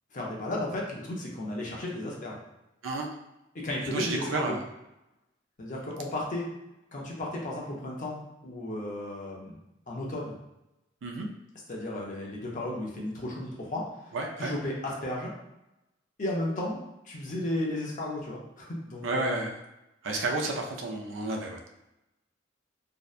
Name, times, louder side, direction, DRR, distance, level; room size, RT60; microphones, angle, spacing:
voice 1, 0.1-2.3 3.5-4.6 5.6-6.5 6.9-9.5 9.9-10.3 11.7-13.8 14.4-15.3 16.2-16.8 17.0-19.5, left 1 dB, 45° left, -3 dB, 0.6 m, -34 dB
voice 2, 3.9-4.6 11.0-11.3 14.1-14.5 19.0-19.5 20.0-21.6, right 2 dB, 85° right, 2 dB, 0.4 m, -31 dB
2.6 x 2.1 x 2.4 m, 0.92 s
head